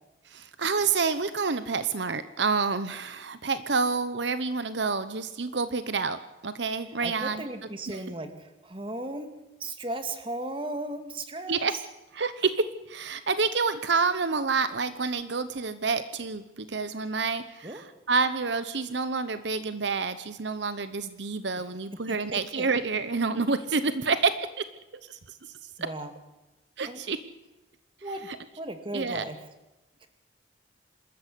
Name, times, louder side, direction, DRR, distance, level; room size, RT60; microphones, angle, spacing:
voice 1, 0.3-7.4 7.9-8.0 11.5-11.7 12.2-24.6 25.0-25.2 25.8-25.9 26.8-27.2 28.3-28.4 28.9-29.2, right 4 dB, 70° right, 12 dB, 0.9 m, -28 dB
voice 2, 7.0-9.3 9.6-11.6 17.6-17.8 21.9-22.7 25.8-26.1 26.9-27.0 28.0-28.3 28.6-29.4 30.0-30.1, right 1 dB, 30° right, 7 dB, 2.0 m, -36 dB
26.0 x 13.5 x 8.4 m, 1.0 s
head